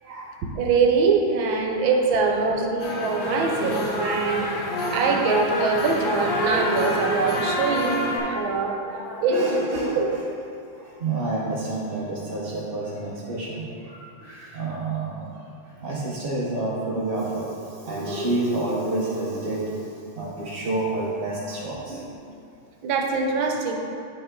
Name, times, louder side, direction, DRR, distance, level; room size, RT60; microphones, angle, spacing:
voice 1, 0.4-4.6 4.9-8.7 9.2-10.1 22.8-23.7, right 4 dB, 75° right, 2 dB, 1.5 m, -23 dB
voice 2, 2.4-2.7 3.0-3.1 6.9-7.0 8.0-10.0 10.7-15.4 15.8-22.1, right 2 dB, 55° right, -5 dB, 0.6 m, -29 dB
sound 1, 2.8-8.2, left 1 dB, 45° left, 1.4 m, -26 dB
9.7 x 5.5 x 3.7 m, 2.5 s
omnidirectional pair, 2.2 m